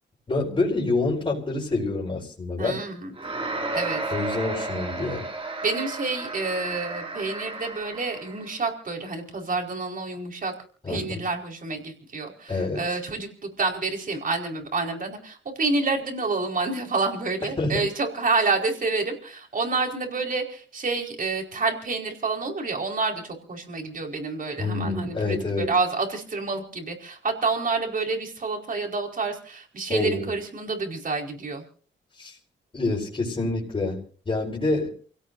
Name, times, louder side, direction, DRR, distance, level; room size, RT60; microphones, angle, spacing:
voice 1, 0.3-2.8 4.1-5.3 10.8-11.2 12.5-12.8 17.6-17.8 24.6-25.7 29.9-30.3 32.2-32.4 32.7-34.9, left 3 dB, 30° left, -4 dB, 4.6 m, -27 dB
voice 2, 2.6-3.1 3.7-4.0 5.6-10.5 10.9-13.3 13.6-31.6, right 3 dB, 45° right, 2 dB, 4.8 m, -28 dB
sound 1, 3.2-8.5, right 2 dB, 30° right, 2.5 m, -33 dB
29.0 x 17.0 x 2.7 m, 0.42 s
cardioid pair, 105°, 19 cm